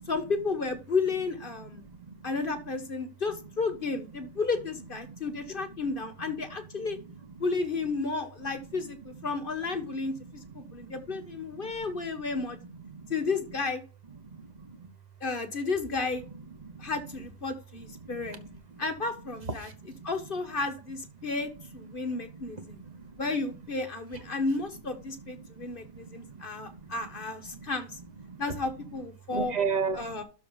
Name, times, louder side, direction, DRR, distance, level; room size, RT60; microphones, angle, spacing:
voice 1, 0.1-1.8 2.2-7.0 7.4-12.6 13.1-13.8 15.2-16.2 16.8-18.4 18.8-19.7 20.0-22.8 23.2-28.0 28.4-29.5 29.9-30.2, left 4 dB, 40° left, 6 dB, 1.4 m, -32 dB
voice 2, 10.6-10.9 11.6-11.9 12.9-13.1 14.3-14.9 16.6-16.9 18.2-18.4 18.7-18.8 19.6-19.7 20.0-20.1 22.7-23.0 25.6-26.8 27.2-27.7 28.3-28.4 29.3-30.2, right 5 dB, 30° right, 8 dB, 1.4 m, -36 dB
12.5 x 4.2 x 5.2 m, 0.35 s
omnidirectional pair, 1.6 m